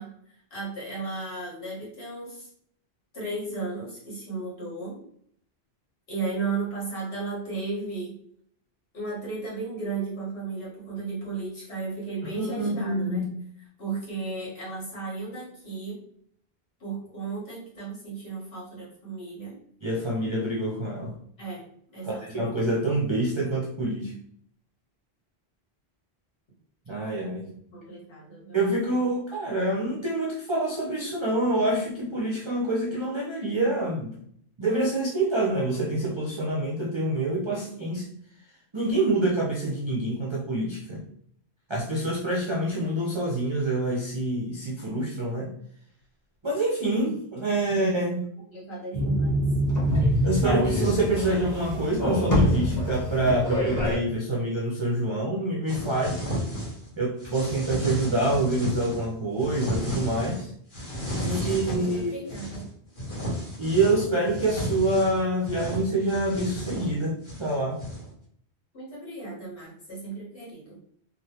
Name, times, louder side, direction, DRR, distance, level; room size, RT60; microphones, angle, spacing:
voice 1, 0.0-2.5 3.1-5.0 6.1-8.2 8.9-13.2 13.8-16.0 16.8-19.5 21.4-21.6 21.9-22.5 27.7-28.7 48.1-48.2 48.5-49.4 61.2-62.6 68.7-70.8, right 3 dB, 70° left, -6 dB, 1.6 m, -35 dB
voice 2, 12.4-13.3 19.8-21.2 22.0-24.1 26.9-27.4 28.5-34.2 34.6-38.1 38.7-41.0 41.7-45.5 46.4-48.3 50.2-56.2 57.0-60.5 61.2-62.2 63.6-67.8, right 1 dB, 40° right, -3 dB, 0.4 m, -26 dB
sound 1, 48.9-54.0, equal, 20° left, 0.6 m, -25 dB
sound 2, 55.7-56.9 57.2-59.0 59.4-60.4 60.7-62.6 63.0-68.1, equal, 55° left, 1.3 m, -33 dB
3.1 x 2.4 x 2.7 m, 0.66 s
omnidirectional pair, 1.1 m